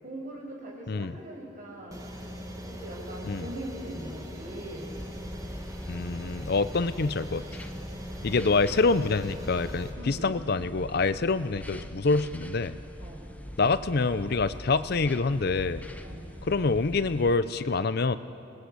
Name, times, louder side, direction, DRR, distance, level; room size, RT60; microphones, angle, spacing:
voice 1, 0.0-4.9 9.9-10.3 13.0-13.2 16.0-16.3, right 1 dB, 40° right, -2 dB, 6.1 m, -41 dB
sound 1, 1.9-9.9, equal, 15° right, 1.9 m, -41 dB
sound 2, 4.9-17.4, equal, 10° left, 0.9 m, -43 dB
voice 2, 5.9-7.4 8.2-12.7 13.6-15.9 16.4-18.2, left 3 dB, 50° left, 14 dB, 0.5 m, -26 dB
27.0 x 20.0 x 8.1 m, 2.8 s
head